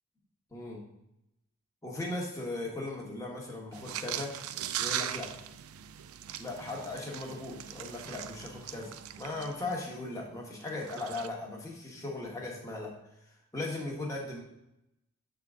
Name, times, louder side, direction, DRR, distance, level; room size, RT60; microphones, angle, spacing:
voice 1, 1.8-4.4 4.8-5.3 6.4-12.9 13.5-14.4, left 2 dB, 15° left, -2 dB, 1.2 m, -38 dB
sound 1, 3.7-9.9 10.6-11.3, right 10 dB, 80° right, 0.4 m, -39 dB
7.2 x 3.8 x 3.6 m, 0.85 s
head